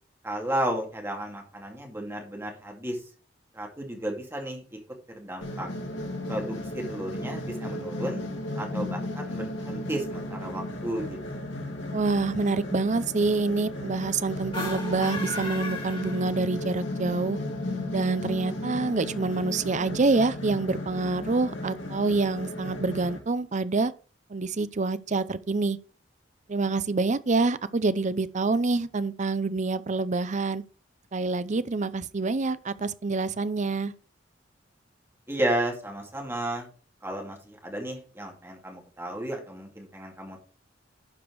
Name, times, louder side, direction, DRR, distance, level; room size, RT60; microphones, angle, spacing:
voice 1, 0.2-3.0 3.5-4.8 5.2-5.7 6.3-8.2 8.6-11.5 35.3-36.7 37.0-40.4, right 1 dB, 15° right, 2.4 m, -33 dB
sound 1, 5.4-23.2, left 1 dB, 80° left, 2.7 m, -35 dB
voice 2, 11.9-17.4 17.9-23.9 24.3-25.8 26.5-30.6 31.1-33.9, right 3 dB, 40° right, 0.6 m, -26 dB
sound 2, 14.5-16.8, left 3 dB, 30° left, 2.9 m, -36 dB
11.5 x 5.0 x 4.7 m
head